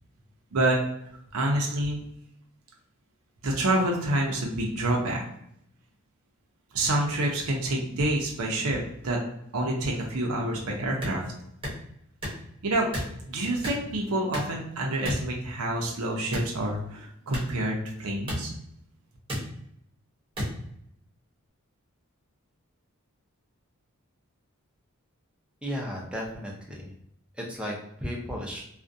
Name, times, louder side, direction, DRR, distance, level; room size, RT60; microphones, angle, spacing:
voice 1, 1.3-2.0 3.4-5.2 6.7-9.2 9.5-11.2 12.6-12.9 13.3-18.5, right 1 dB, 80° right, 0 dB, 0.6 m, -27 dB
sound 1, 11.0-11.2 11.6-11.8 12.2-12.4 12.9-13.1 13.6-13.8 14.3-14.6 15.0-15.2 16.3-16.5 17.3-17.5 18.3-18.4 19.3-19.4 20.4-20.5, equal, 25° right, 0.8 m, -31 dB
voice 2, 25.6-26.9 27.3-28.6, equal, 5° right, -2 dB, 0.5 m, -34 dB
2.4 x 2.1 x 2.6 m, 0.74 s
head